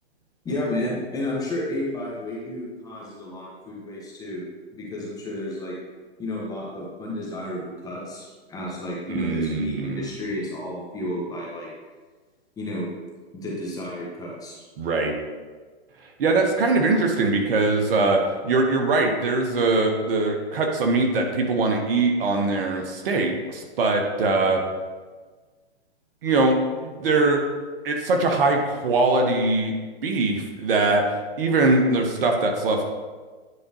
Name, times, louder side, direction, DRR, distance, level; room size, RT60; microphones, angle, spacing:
voice 1, 0.4-4.4 4.7-5.7 6.2-11.7 12.6-12.9 13.3-14.6, left 1 dB, 10° left, -4 dB, 1.4 m, -32 dB
voice 2, 9.1-10.1 14.8-15.1 16.2-24.6 26.2-26.6 26.8-27.4 27.8-29.7 30.0-32.8, right 3 dB, 55° right, 3 dB, 1.2 m, -22 dB
9.8 x 5.1 x 3.0 m, 1.4 s
hypercardioid pair, 135°, 34 cm